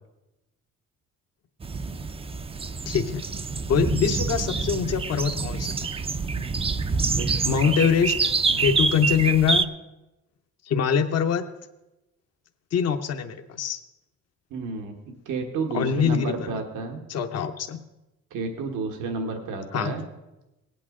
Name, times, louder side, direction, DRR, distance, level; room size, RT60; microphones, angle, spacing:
sound 1, 1.6-9.6, right 4 dB, 20° right, 0.4 m, -26 dB
voice 1, 2.9-3.3 3.7-5.9 7.4-8.3 8.6-9.7 10.6-11.5 12.7-13.8 15.7-16.6 17.1-17.8 19.7-19.9, left 7 dB, 55° left, 7 dB, 0.8 m, -24 dB
voice 2, 7.2-7.7 8.5-8.8 14.5-17.0 18.3-20.0, right 4 dB, 90° right, 4 dB, 1.5 m, -31 dB
17.5 x 8.6 x 3.7 m, 0.99 s
cardioid pair, 90°, 30 cm